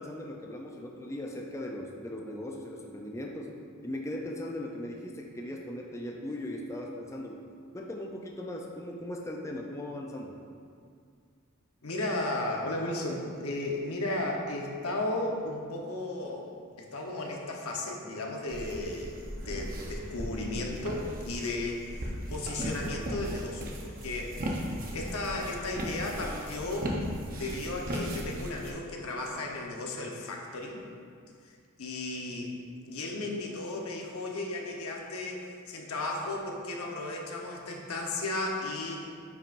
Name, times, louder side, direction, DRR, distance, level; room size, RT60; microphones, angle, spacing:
voice 1, 0.0-3.6 3.8-7.4 7.7-10.4, left 1 dB, 15° left, 0 dB, 0.4 m, -38 dB
voice 2, 11.8-16.5 16.8-30.9 31.5-32.5 32.9-39.1, left 2 dB, 80° left, 0 dB, 1.0 m, -35 dB
sound 1, 18.5-28.7, equal, 40° right, 0.9 m, -37 dB
8.9 x 6.0 x 2.5 m, 2.2 s
head